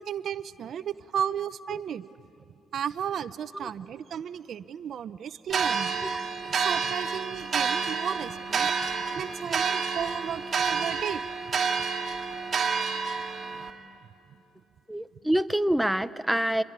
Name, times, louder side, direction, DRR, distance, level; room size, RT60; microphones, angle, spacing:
voice 1, 0.0-2.1 2.7-6.0 6.4-8.7 9.1-11.2, right 9 dB, 65° right, 15 dB, 0.6 m, -34 dB
sound 1, 5.5-13.7, right 5 dB, 45° right, 2.3 m, -29 dB
voice 2, 14.9-16.6, right 1 dB, 5° right, 13 dB, 0.7 m, -26 dB
27.5 x 22.0 x 9.6 m, 2.6 s
cardioid pair, 90°, 0 cm